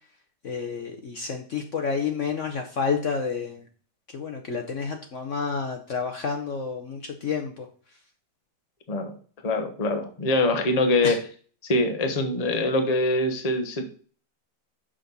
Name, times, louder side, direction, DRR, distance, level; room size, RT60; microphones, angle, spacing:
voice 1, 0.4-3.6 4.1-7.7 11.0-11.2, left 5 dB, 55° left, 4 dB, 1.1 m, -29 dB
voice 2, 9.4-11.2 11.6-13.8, left 2 dB, 25° left, 5 dB, 0.9 m, -24 dB
6.5 x 6.2 x 4.0 m, 0.42 s
omnidirectional pair, 1.8 m